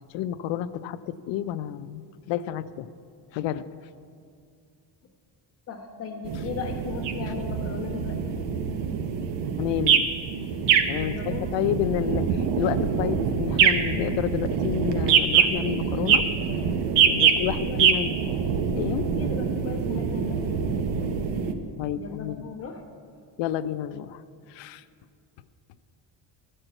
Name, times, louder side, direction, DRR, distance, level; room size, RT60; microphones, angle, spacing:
voice 1, 0.1-2.0 2.3-2.9 3.3-3.6 9.6-10.1 10.9-16.2 17.1-18.1 18.8-19.1 21.8-22.4 23.4-24.2 24.5-24.8, left 11 dB, 85° left, 13 dB, 0.5 m, -30 dB
voice 2, 5.7-8.4 11.0-11.4 17.4-18.1 19.2-21.2 21.9-22.8, left 6 dB, 35° left, 1 dB, 1.1 m, -37 dB
sound 1, 6.2-21.5, right 7 dB, 80° right, 0.8 m, -24 dB
13.5 x 4.5 x 7.8 m, 2.3 s
cardioid pair, 180°, 43 cm